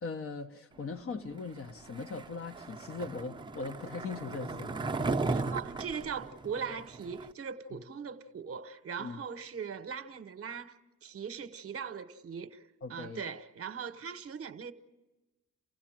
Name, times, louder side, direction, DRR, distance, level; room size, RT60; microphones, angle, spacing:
voice 1, 0.0-4.9 9.0-9.2 12.8-13.2, left 4 dB, 45° left, 1.1 m, -40 dB
Skateboard, 1.9-7.3, right 3 dB, 15° right, 0.8 m, -36 dB
voice 2, 5.3-14.7, right 6 dB, 50° right, 1.0 m, -40 dB
29.5 x 16.0 x 7.5 m
cardioid pair, 90°, 30 cm